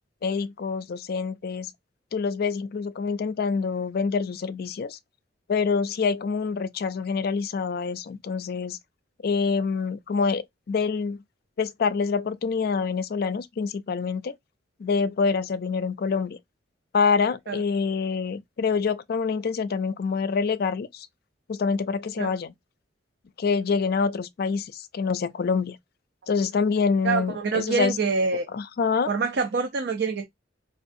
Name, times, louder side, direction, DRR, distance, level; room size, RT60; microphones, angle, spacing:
voice 1, 0.2-1.7 2.1-5.0 5.5-8.8 9.2-11.2 11.6-14.3 14.8-16.4 16.9-21.1 21.5-22.5 23.4-25.8 26.3-28.0 28.5-29.1, left 5 dB, 50° left, 0.4 m, -26 dB
voice 2, 27.0-28.5 29.1-30.3, right 4 dB, 60° right, 0.5 m, -25 dB
4.5 x 2.4 x 2.5 m
head